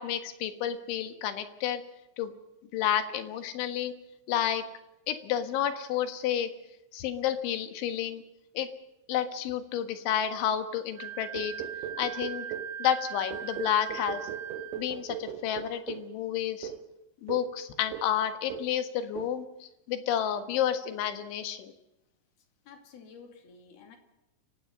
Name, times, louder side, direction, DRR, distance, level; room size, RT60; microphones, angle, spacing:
voice 1, 0.0-1.8 2.2-2.3 2.7-3.9 4.3-4.6 5.1-6.5 6.9-8.2 8.6-8.7 9.1-11.5 12.0-12.5 12.8-14.2 14.8-16.7 17.2-21.7, left 10 dB, 75° left, 9 dB, 3.8 m, -30 dB
Wind instrument woodwind instrument, 11.0-14.8, right 9 dB, 55° right, 3.2 m, -40 dB
sound 1, 11.3-12.8 13.3-16.1 16.6-16.9 17.3-17.6 17.9-18.2 18.5-18.8 19.2-19.4, right 9 dB, 75° right, 3.3 m, -39 dB
voice 2, 22.7-24.0, left 5 dB, 55° left, 5 dB, 4.2 m, -51 dB
29.5 x 16.5 x 5.5 m, 0.94 s
omnidirectional pair, 5.7 m